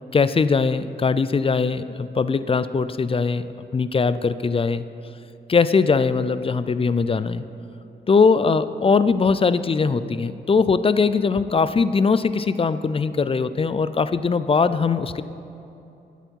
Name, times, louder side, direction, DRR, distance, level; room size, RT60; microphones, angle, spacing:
voice 1, 0.1-4.8 5.5-7.4 8.1-15.2, left 5 dB, 30° left, 14 dB, 0.4 m, -21 dB
12.0 x 8.2 x 4.6 m, 2.9 s
cardioid pair, 75°, 18 cm